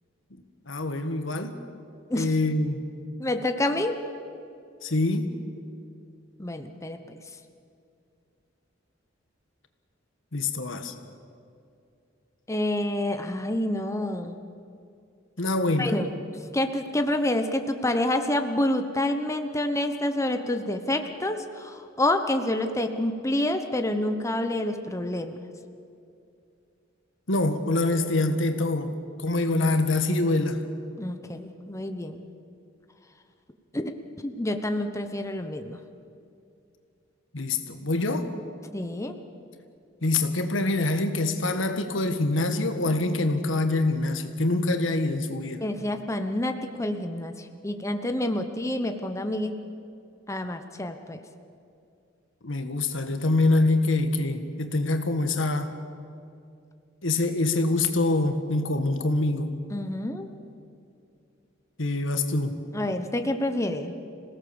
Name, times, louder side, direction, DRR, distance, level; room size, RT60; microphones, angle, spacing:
voice 1, 0.7-1.5 2.2-2.8 4.8-5.3 10.3-10.9 15.4-16.0 27.3-28.9 29.2-30.6 37.3-38.3 40.0-45.6 52.4-55.7 57.0-59.5 61.8-62.6, left 2 dB, 80° left, 7 dB, 1.6 m, -25 dB
voice 2, 3.2-4.0 6.4-7.2 12.5-14.4 15.8-16.1 16.5-25.5 31.0-32.2 33.7-33.9 34.2-35.8 38.7-39.2 45.6-49.5 50.3-51.2 59.7-60.3 62.7-63.9, left 1 dB, 15° left, 6 dB, 0.9 m, -28 dB
26.5 x 17.5 x 7.1 m, 2.5 s
head